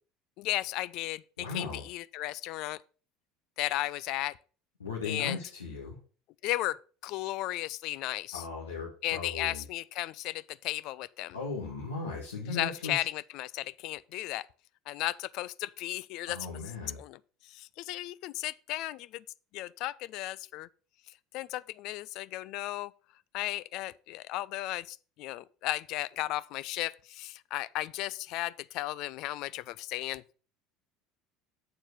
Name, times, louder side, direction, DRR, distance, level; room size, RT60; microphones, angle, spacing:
voice 1, 0.4-2.8 3.6-4.4 5.0-5.4 6.4-8.4 9.0-11.4 12.5-14.5 14.9-16.5 16.9-19.2 19.5-20.7 21.1-22.9 23.3-30.2, left 16 dB, 60° left, 0.3 m, -35 dB
voice 2, 1.4-1.8 4.8-6.0 8.3-9.6 11.3-13.0 16.3-17.0, left 4 dB, 85° left, 1.4 m, -37 dB
7.3 x 4.5 x 5.9 m
hypercardioid pair, 70°, 0 cm